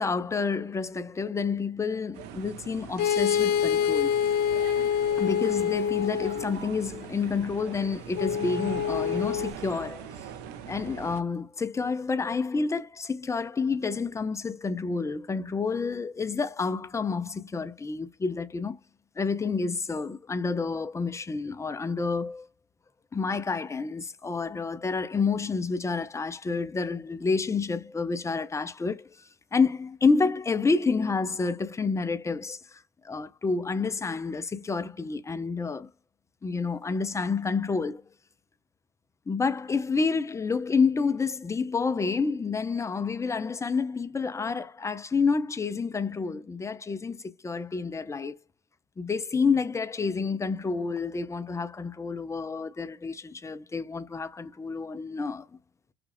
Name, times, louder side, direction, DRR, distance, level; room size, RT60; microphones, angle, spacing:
voice 1, 0.0-4.1 5.2-10.2 10.7-18.8 19.2-22.5 23.1-35.9 36.4-38.0 39.3-48.4 49.0-55.5, left 4 dB, 15° left, 0.7 m, -29 dB
sound 1, 2.1-11.2, right 9 dB, 85° right, 1.1 m, -41 dB
sound 2, 3.0-6.6 8.2-9.5, left 8 dB, 65° left, 0.6 m, -26 dB
5.9 x 2.4 x 3.3 m
cardioid pair, 110°, 17 cm